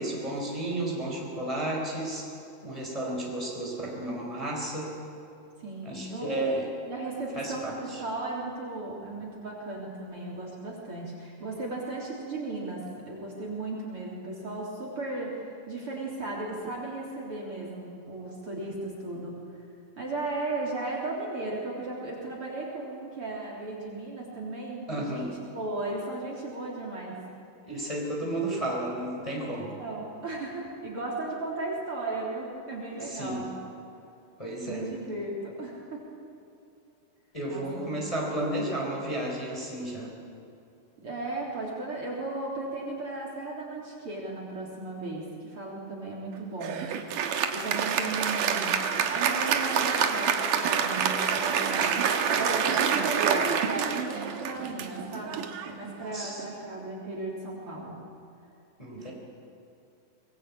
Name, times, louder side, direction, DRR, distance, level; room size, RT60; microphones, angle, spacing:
voice 1, 0.0-2.3 2.6-4.9 5.8-6.7 7.4-8.0 24.9-25.4 27.6-29.8 33.0-33.5 34.4-34.9 37.3-40.1 56.1-56.4 58.8-59.1, right 1 dB, 10° left, -2 dB, 4.3 m, -32 dB
voice 2, 5.6-6.5 6.9-19.3 20.0-27.2 27.7-27.9 29.8-33.4 34.6-36.0 37.5-37.9 41.0-46.8 47.5-48.8 49.1-51.9 52.3-57.9 58.9-59.1, right 2 dB, 40° right, -2 dB, 4.3 m, -36 dB
Applause, 46.6-56.4, right 7 dB, 70° right, 2.8 m, -27 dB
24.0 x 20.5 x 8.6 m, 2.6 s
omnidirectional pair, 4.1 m